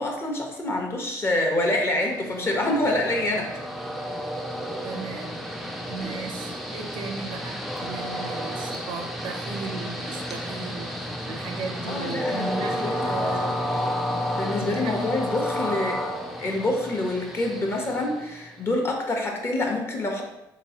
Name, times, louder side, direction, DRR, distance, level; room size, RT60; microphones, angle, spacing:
voice 1, 0.0-3.5 11.9-13.1 14.4-15.9 16.4-20.2, left 1 dB, 30° left, 1 dB, 0.8 m, -26 dB
Train, 1.8-18.6, equal, ahead, 0.4 m, -31 dB
voice 2, 4.8-5.4 5.9-13.6 14.6-15.1 15.6-16.1, right 4 dB, 80° right, 3 dB, 0.6 m, -36 dB
3.5 x 3.0 x 2.8 m, 0.89 s
cardioid pair, 90°, 8 cm